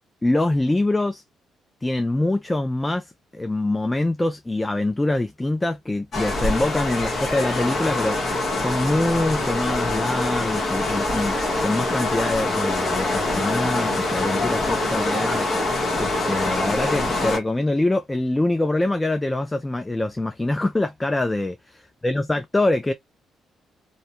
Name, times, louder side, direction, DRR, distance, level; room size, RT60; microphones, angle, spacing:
voice 1, 0.2-1.2 1.8-8.2 8.6-11.4 11.6-21.8 22.0-22.9, left 2 dB, 15° left, 0.3 m, -24 dB
sound 1, 6.1-17.4, left 2 dB, 45° left, 1.1 m, -24 dB
2.6 x 2.1 x 2.7 m
cardioid pair, 90°, 0 cm